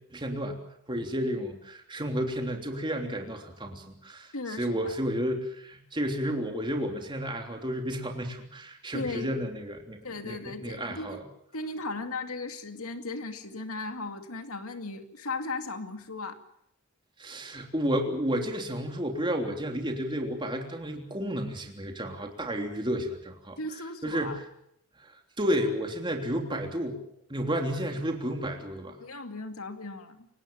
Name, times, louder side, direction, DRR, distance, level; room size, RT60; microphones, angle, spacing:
voice 1, 0.1-0.6 0.9-4.3 4.6-10.0 10.2-11.2 17.2-23.6 24.0-24.4 25.4-27.0 27.3-29.0, equal, 20° right, 3 dB, 3.3 m, -31 dB
voice 2, 4.3-4.9 8.9-9.3 10.0-11.2 11.5-16.4 23.6-24.4 29.0-30.3, left 3 dB, 75° left, 6 dB, 2.4 m, -36 dB
28.0 x 18.0 x 7.1 m, 0.73 s
head